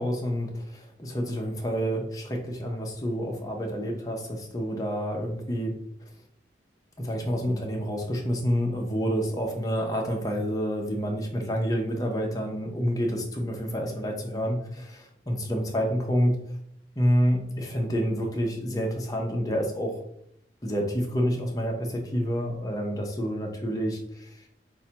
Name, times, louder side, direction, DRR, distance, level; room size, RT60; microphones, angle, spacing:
voice 1, 0.0-5.7 7.0-16.4 17.0-20.0 20.6-24.4, equal, 20° left, 0 dB, 0.6 m, -28 dB
5.4 x 2.2 x 2.8 m, 0.73 s
head